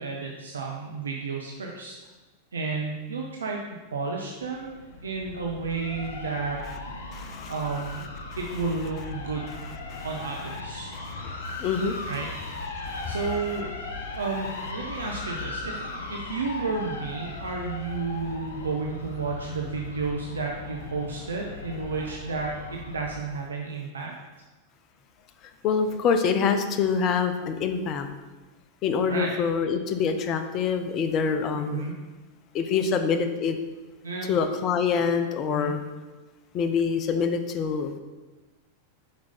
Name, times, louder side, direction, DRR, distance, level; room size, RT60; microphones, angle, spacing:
voice 1, 0.0-2.1 2.5-3.6 3.9-6.6 6.9-8.1 8.4-9.6 10.0-10.9 12.0-12.3 12.8-13.7 14.1-24.1 29.1-29.3 31.5-31.9 34.0-34.4 35.5-35.8, right 4 dB, 70° right, 0 dB, 0.6 m, -32 dB
sound 1, 4.4-23.2, left 2 dB, 65° left, 0.8 m, -38 dB
voice 2, 7.1-7.5 9.9-10.1 11.2-12.1 12.8-13.2 25.4-28.1 28.8-31.8 32.5-33.6 34.3-35.8 36.5-38.0, left 6 dB, 35° left, 7 dB, 0.5 m, -26 dB
5.2 x 4.6 x 4.1 m, 1.2 s
figure-of-eight pair, 90°, 0 cm